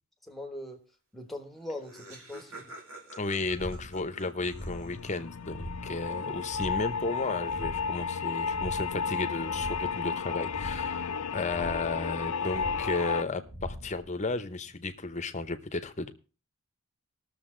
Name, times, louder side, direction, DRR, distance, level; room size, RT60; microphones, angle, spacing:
voice 1, 0.3-0.8 1.1-2.7, left 1 dB, ahead, 4 dB, 1.3 m, -41 dB
Laughter, 1.3-1.4 1.5-5.2, right 2 dB, 70° right, 2.6 m, -49 dB
voice 2, 3.2-16.1, left 3 dB, 30° left, 10 dB, 0.9 m, -34 dB
sound 1, 3.3-15.1, equal, 30° right, 4.5 m, -44 dB
sound 2, 4.4-13.2, left 6 dB, 90° left, 0.6 m, -33 dB
20.0 x 6.9 x 3.8 m, 0.34 s
head